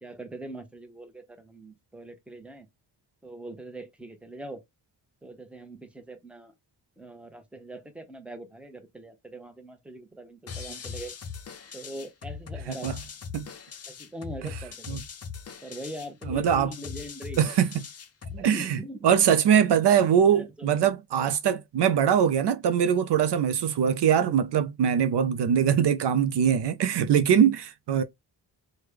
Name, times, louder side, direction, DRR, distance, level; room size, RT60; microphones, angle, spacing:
voice 1, 0.0-2.7 3.2-4.6 5.2-6.5 7.0-11.1 11.7-12.9 13.9-15.0 15.6-17.4 18.3-19.1 20.3-21.0, right 1 dB, 5° right, 0.7 m, -42 dB
sound 1, 10.5-18.5, left 6 dB, 35° left, 0.5 m, -40 dB
voice 2, 16.3-16.7 17.4-17.7 18.4-18.8 19.0-28.0, right 8 dB, 65° right, 0.5 m, -22 dB
3.2 x 2.2 x 3.4 m
cardioid pair, 65°, 44 cm